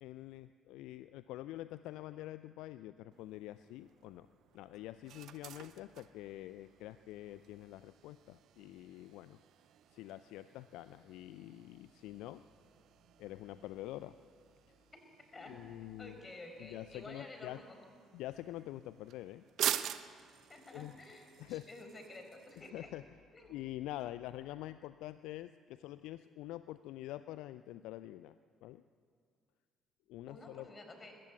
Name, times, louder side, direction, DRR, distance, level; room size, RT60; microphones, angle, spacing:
voice 1, 0.0-4.3 4.5-9.4 9.9-12.4 13.2-14.1 15.5-16.2 16.6-17.6 18.1-19.4 20.7-20.9 21.4-21.6 22.6-23.0 23.5-28.3 28.6-28.8 30.1-30.7, left 15 dB, 65° left, 14 dB, 0.4 m, -46 dB
sound 1, 3.1-22.7, right 11 dB, 55° right, 0.7 m, -47 dB
voice 2, 16.0-17.8 20.5-22.9 23.3-23.5 30.3-31.1, left 2 dB, 30° left, 4 dB, 4.6 m, -51 dB
20.5 x 15.5 x 8.3 m, 2.1 s
figure-of-eight pair, 50°, 0 cm